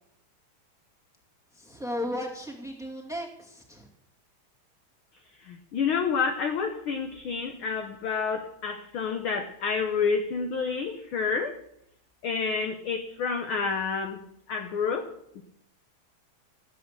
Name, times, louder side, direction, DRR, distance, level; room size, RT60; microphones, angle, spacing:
voice 1, 1.5-3.9, left 1 dB, ahead, 0 dB, 1.8 m, -35 dB
voice 2, 5.4-11.6 12.2-14.2 14.5-15.4, left 5 dB, 65° left, 6 dB, 1.3 m, -29 dB
15.5 x 8.5 x 6.7 m, 0.76 s
omnidirectional pair, 3.5 m